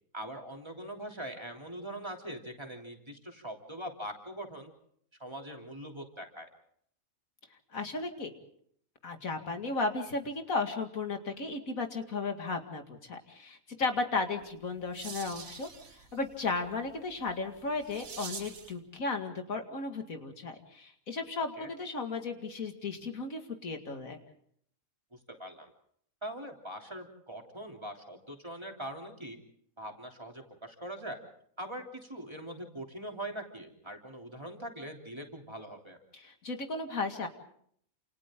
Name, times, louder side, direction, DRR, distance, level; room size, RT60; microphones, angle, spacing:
voice 1, 0.1-4.7 5.2-6.5 21.6-21.7 25.1-25.7 26.2-29.4 29.8-31.2 31.6-36.0, right 1 dB, 20° right, 1 dB, 3.4 m, -42 dB
voice 2, 7.7-8.3 9.0-24.2 36.1-37.3, left 3 dB, 80° left, 5 dB, 2.6 m, -35 dB
sound 1, 14.4-18.8, right 5 dB, 80° right, 2.0 m, -47 dB
29.0 x 28.0 x 3.8 m, 0.64 s
omnidirectional pair, 1.4 m